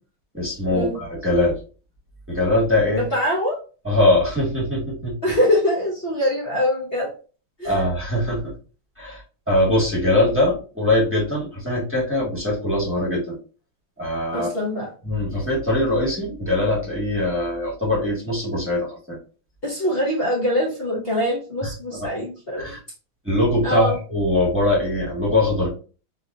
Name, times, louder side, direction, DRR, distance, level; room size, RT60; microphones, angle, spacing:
voice 1, 0.3-1.6 2.3-3.0 3.8-5.4 7.6-8.5 9.0-9.2 9.5-13.4 14.0-14.5 15.0-19.2 21.9-22.1 22.6-22.8 23.2-25.7, left 1 dB, 10° right, -6 dB, 1.0 m, -22 dB
voice 2, 2.9-3.6 5.2-7.1 7.6-7.8 14.3-14.9 19.6-22.8 23.6-24.0, left 1 dB, 60° left, -4 dB, 0.6 m, -23 dB
4.0 x 2.7 x 2.5 m, 0.36 s
omnidirectional pair, 2.3 m